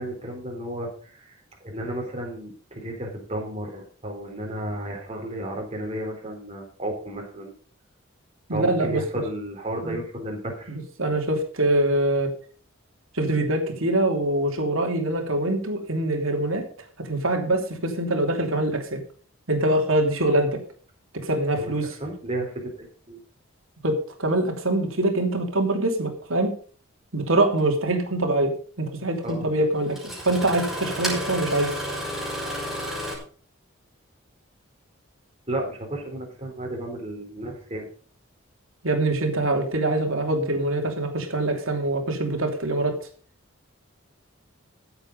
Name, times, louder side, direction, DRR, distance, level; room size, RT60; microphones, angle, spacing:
voice 1, 0.0-1.4 1.6-7.5 8.5-10.8 21.5-21.7 22.0-23.2 29.2-29.5 35.5-37.9, right 1 dB, 30° right, 1 dB, 3.7 m, -33 dB
voice 2, 8.5-9.2 9.8-10.0 10.7-12.3 13.1-16.6 17.0-19.0 19.5-20.6 21.2-22.0 23.8-26.5 27.1-30.0 30.2-31.8 38.8-43.1, right 1 dB, 75° right, 4 dB, 2.9 m, -24 dB
Engine starting, 27.6-27.7 29.3-29.4 29.9-33.1, equal, ahead, 5.2 m, -31 dB
15.0 x 7.9 x 5.3 m, 0.43 s
head